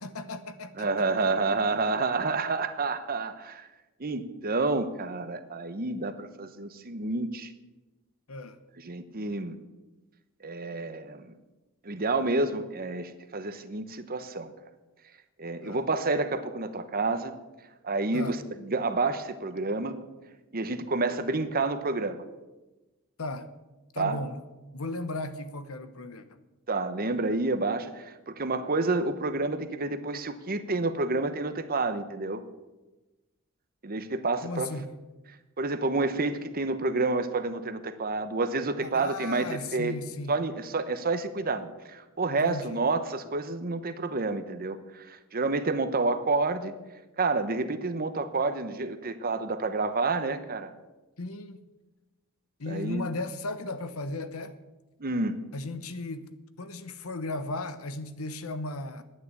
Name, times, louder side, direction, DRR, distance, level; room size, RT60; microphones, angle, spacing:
voice 1, 0.0-0.9 8.3-8.6 15.6-15.8 18.1-18.3 23.2-23.5 23.9-24.4 24.7-26.4 34.4-34.9 38.8-40.4 42.3-42.8 51.2-51.6 52.6-54.5 55.5-56.3 56.6-59.0, left 2 dB, 80° left, 1.1 m, -36 dB
voice 2, 0.8-3.7 4.0-7.5 8.8-9.6 10.4-11.3 11.8-14.5 15.4-17.3 17.8-20.0 20.5-22.2 24.0-24.2 26.7-32.4 33.8-34.7 35.6-39.5 39.7-40.0 40.3-46.7 47.2-50.7 52.7-53.0 55.0-55.4, right 3 dB, 45° right, 1.0 m, -29 dB
11.0 x 9.6 x 8.3 m
head